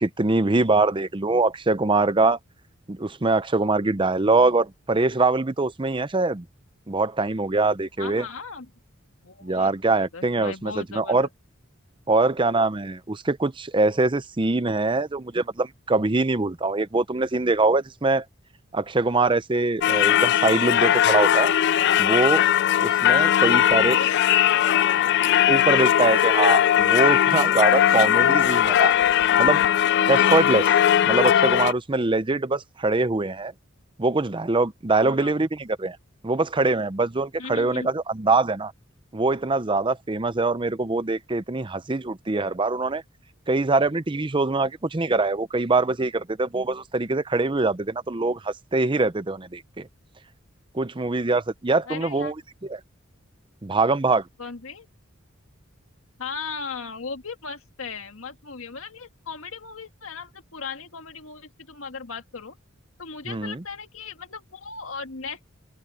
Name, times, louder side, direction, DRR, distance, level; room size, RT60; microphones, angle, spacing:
voice 1, 0.0-2.4 2.9-6.4 6.9-8.2 9.4-11.3 12.1-18.2 18.7-21.5 22.0-22.4 22.8-24.0 25.5-28.9 29.4-29.7 30.1-30.7 31.0-33.5 34.0-36.0 36.2-38.7 39.1-43.0 43.5-49.9 50.7-52.3 52.7-52.8 53.6-54.3 63.3-63.6, right 3 dB, 25° right, 0.7 m, -23 dB
voice 2, 8.0-8.7 9.2-11.3 23.1-25.3 27.9-28.5 35.0-35.4 37.4-37.9 51.9-52.3 54.4-54.9 56.2-62.6 63.0-65.5, left 5 dB, 80° left, 1.8 m, -37 dB
Singing / Church bell, 19.8-31.7, left 10 dB, 55° left, 0.3 m, -19 dB
open air
head